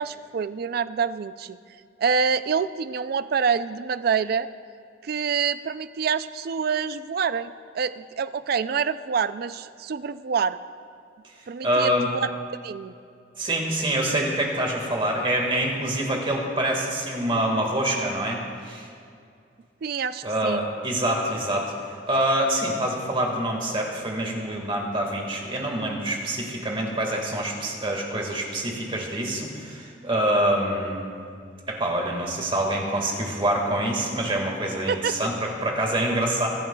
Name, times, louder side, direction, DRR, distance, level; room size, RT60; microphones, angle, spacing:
voice 1, 0.0-1.6 2.0-4.5 5.0-10.6 11.5-12.2 12.6-12.9 19.8-20.7 34.9-35.2, right 6 dB, 55° right, 14 dB, 0.3 m, -26 dB
voice 2, 11.6-12.1 13.4-18.9 20.2-31.1 31.7-36.5, right 1 dB, 30° right, 0 dB, 1.7 m, -26 dB
24.0 x 10.5 x 2.3 m, 2.4 s
head